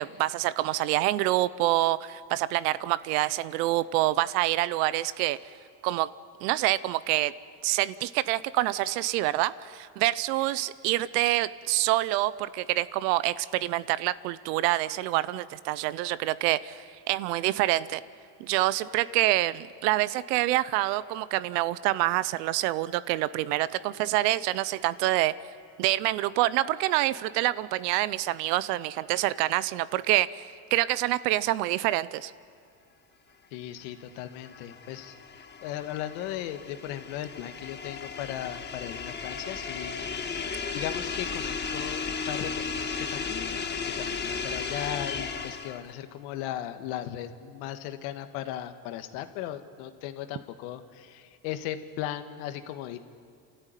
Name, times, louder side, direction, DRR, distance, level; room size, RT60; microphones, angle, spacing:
voice 1, 0.0-5.4 5.8-6.1 6.4-7.3 7.6-18.0 18.4-25.3 25.8-32.3, right 16 dB, 80° right, 17 dB, 0.8 m, -26 dB
voice 2, 33.5-40.1 40.7-53.0, left 11 dB, 75° left, 9 dB, 1.7 m, -37 dB
sound 1, 34.0-45.9, left 5 dB, 20° left, 1.4 m, -35 dB
28.5 x 13.5 x 9.2 m, 2.3 s
supercardioid pair, 110°, 48 cm